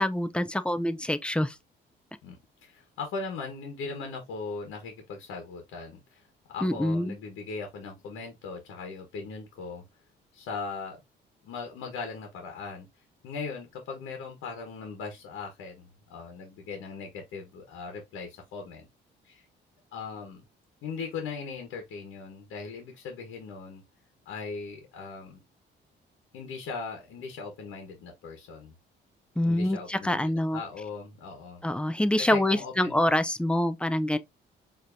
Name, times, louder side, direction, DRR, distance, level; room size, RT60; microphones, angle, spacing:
voice 1, 0.0-1.5 6.6-7.2 29.4-30.6 31.6-34.2, left 1 dB, 5° left, 0.4 m, -26 dB
voice 2, 2.2-6.2 6.5-9.8 10.3-11.0 11.4-12.9 13.2-18.9 19.2-19.5 19.9-20.4 20.8-23.8 24.2-25.4 26.3-28.7 29.4-31.6 32.2-33.0, left 4 dB, 85° left, 1.2 m, -39 dB
4.9 x 2.9 x 2.6 m
cardioid pair, 90°, 20 cm